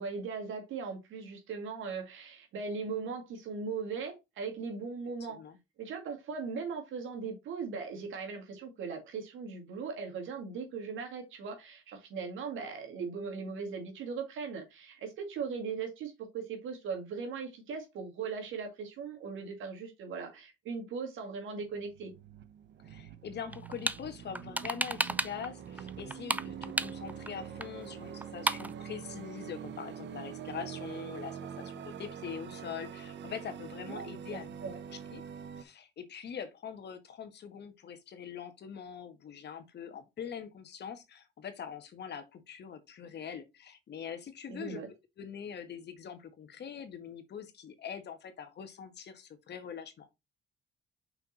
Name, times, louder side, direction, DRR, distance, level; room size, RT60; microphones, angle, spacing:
voice 1, 0.0-5.4 5.8-22.1 33.9-34.8 44.5-44.9, right 5 dB, 80° right, 2.3 m, -39 dB
sound 1, 21.6-35.6, right 8 dB, 65° right, 0.8 m, -44 dB
voice 2, 22.8-34.6 34.9-35.2 35.5-44.8 45.2-50.1, left 7 dB, 60° left, 1.3 m, -43 dB
sound 2, 23.5-24.0 24.4-25.5 25.8-27.3 27.6-27.7 27.9-28.0 28.2-28.7, right 2 dB, 10° right, 0.4 m, -32 dB
5.7 x 4.3 x 4.1 m
cardioid pair, 90°, 20 cm